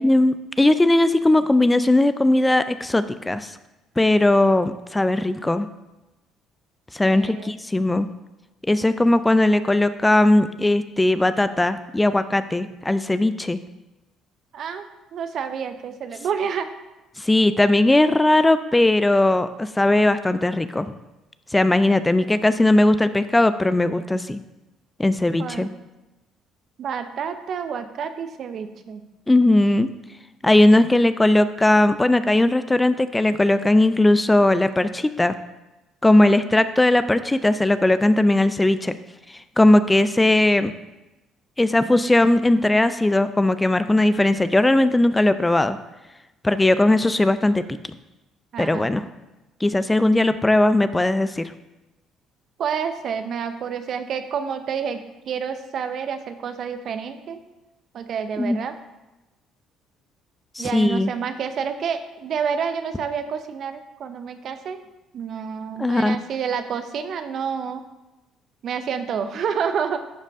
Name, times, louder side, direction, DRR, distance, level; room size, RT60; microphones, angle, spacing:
voice 1, 0.0-3.5 4.0-5.7 6.9-8.1 8.7-13.6 17.2-20.9 21.5-24.4 25.0-25.7 29.3-29.9 30.4-35.4 36.0-38.9 39.6-40.7 41.6-45.8 46.4-47.6 48.6-49.0 49.6-51.5 58.4-58.6 60.6-61.1 65.8-66.2, left 1 dB, 15° left, 12 dB, 0.4 m, -18 dB
voice 2, 7.1-7.5 14.5-14.9 15.1-16.7 25.4-25.7 26.8-29.0 48.5-48.9 52.6-57.4 57.9-58.7 60.6-64.8 65.1-67.8 68.6-70.0, right 7 dB, 55° right, 9 dB, 0.6 m, -29 dB
11.0 x 5.2 x 2.6 m, 1.0 s
hypercardioid pair, 55°, 0 cm